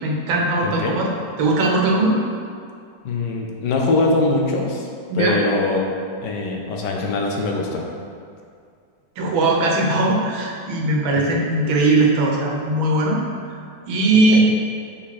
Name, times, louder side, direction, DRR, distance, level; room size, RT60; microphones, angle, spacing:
voice 1, 0.0-1.1 1.4-2.2 5.1-5.4 9.2-13.5 13.9-14.4, right 2 dB, 85° right, -1 dB, 1.7 m, -19 dB
voice 2, 0.6-1.0 3.0-4.9 5.1-5.8 6.2-7.8 11.1-11.2 14.3-14.4, left 3 dB, 70° left, 0 dB, 1.3 m, -22 dB
5.8 x 4.9 x 4.2 m, 2.3 s
omnidirectional pair, 2.1 m